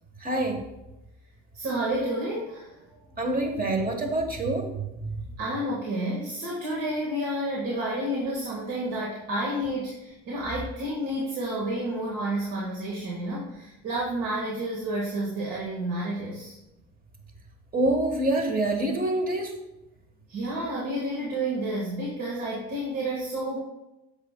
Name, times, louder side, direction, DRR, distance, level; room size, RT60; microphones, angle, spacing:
voice 1, 0.2-0.6 3.2-5.2 17.7-19.5, right 2 dB, 30° right, 5 dB, 1.3 m, -26 dB
voice 2, 1.5-2.8 5.4-16.5 20.3-23.6, right 1 dB, 80° right, -4 dB, 1.7 m, -30 dB
8.1 x 6.7 x 2.2 m, 0.98 s
cardioid pair, 95°, 31 cm